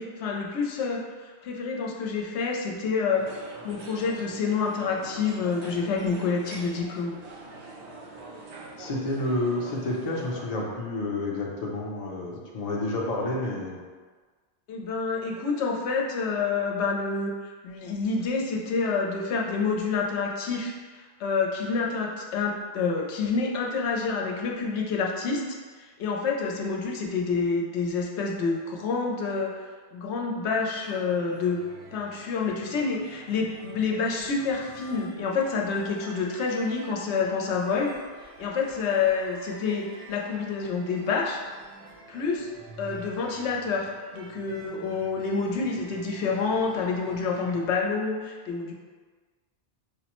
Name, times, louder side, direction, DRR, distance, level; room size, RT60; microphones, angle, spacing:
voice 1, 0.0-3.3 3.6-7.1 14.7-17.3 17.6-29.6 29.9-31.6 31.9-37.9 38.2-41.4 42.1-42.5 42.8-48.7, left 4 dB, 80° left, 0 dB, 0.8 m, -28 dB
sound 1, 3.1-10.5, right 2 dB, 60° right, 0.4 m, -44 dB
voice 2, 8.8-13.8, left 2 dB, 45° left, -2 dB, 0.5 m, -30 dB
sound 2, 30.7-47.7, right 2 dB, 75° right, 0.9 m, -48 dB
4.8 x 2.0 x 2.9 m, 1.4 s
omnidirectional pair, 1.1 m